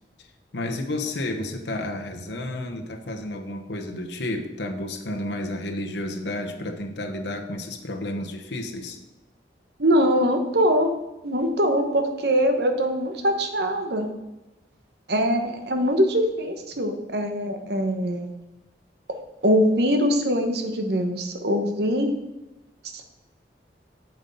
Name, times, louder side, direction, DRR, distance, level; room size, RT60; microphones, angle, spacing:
voice 1, 0.5-9.0, left 1 dB, 85° left, 4 dB, 1.1 m, -31 dB
voice 2, 9.8-10.9 11.2-14.1 15.1-18.3 19.4-22.1 22.9-23.0, equal, 70° right, 5 dB, 1.2 m, -22 dB
7.6 x 7.1 x 5.4 m, 0.99 s
head